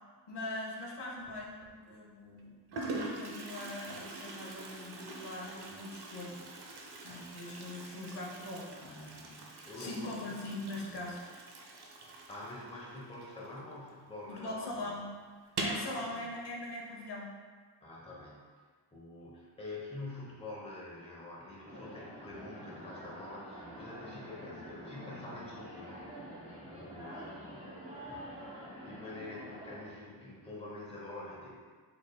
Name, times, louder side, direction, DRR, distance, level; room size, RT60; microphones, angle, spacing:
voice 1, 0.3-6.7 7.0-9.5 9.8-11.2 14.3-15.1 15.6-17.3, left 2 dB, 70° left, -3 dB, 0.8 m, -42 dB
Toilet flush, 1.2-1.7 2.4-2.5 2.7-14.0 14.3-14.4 14.7-14.8 15.4-15.9, right 2 dB, 65° right, 0.5 m, -43 dB
voice 2, 9.7-10.4 10.9-11.0 12.3-14.9 15.7-16.3 17.8-18.4 18.9-25.9 26.3-27.8 28.3-31.5, left 2 dB, 15° left, -5 dB, 0.7 m, -46 dB
sound 1, 21.6-30.0, equal, 15° right, 0.9 m, -47 dB
3.9 x 3.4 x 2.2 m, 1.5 s
wide cardioid pair, 130°, 42 cm